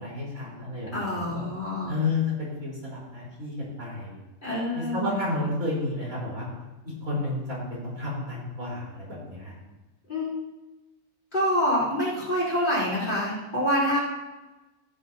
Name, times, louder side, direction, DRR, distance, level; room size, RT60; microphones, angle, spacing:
voice 1, 0.0-1.4 1.9-4.2 4.7-6.5 7.0-9.5, left 2 dB, 90° right, -6 dB, 4.7 m, -31 dB
voice 2, 0.9-1.9 4.4-5.3 10.1-10.3 11.3-14.0, equal, 35° left, -7 dB, 4.1 m, -26 dB
14.5 x 10.5 x 2.8 m, 1.1 s
omnidirectional pair, 1.4 m